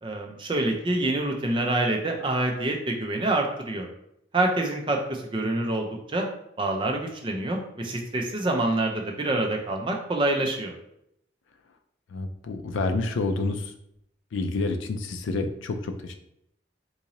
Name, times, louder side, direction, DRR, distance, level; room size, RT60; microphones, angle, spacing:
voice 1, 0.0-3.9 4.3-6.3 6.6-10.7, right 2 dB, 25° right, 2 dB, 0.5 m, -26 dB
voice 2, 12.1-13.7 14.3-16.2, left 3 dB, 85° left, 7 dB, 0.4 m, -28 dB
3.8 x 2.6 x 2.9 m, 0.75 s
head